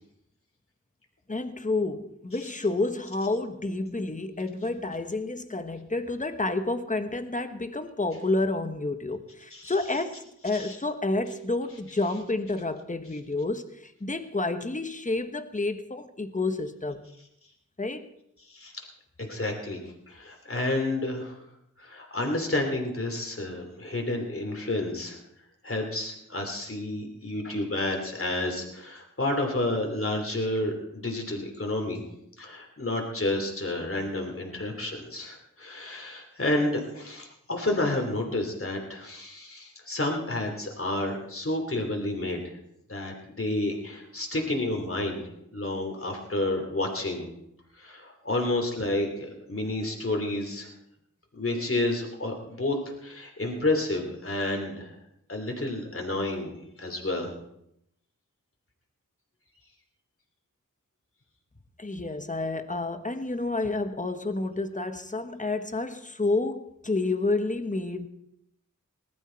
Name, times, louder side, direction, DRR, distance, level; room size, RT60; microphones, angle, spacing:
voice 1, 1.3-17.1 17.8-18.1 61.8-68.1, left 2 dB, 25° left, 1.2 m, -29 dB
voice 2, 18.4-18.8 19.2-21.4 21.8-25.2 25.6-32.0 32.4-42.6 42.9-45.2 45.5-47.3 47.7-50.7 51.3-55.0 55.3-57.3, left 2 dB, 45° left, 2.9 m, -30 dB
19.5 x 12.5 x 4.5 m
wide cardioid pair, 65°, 31 cm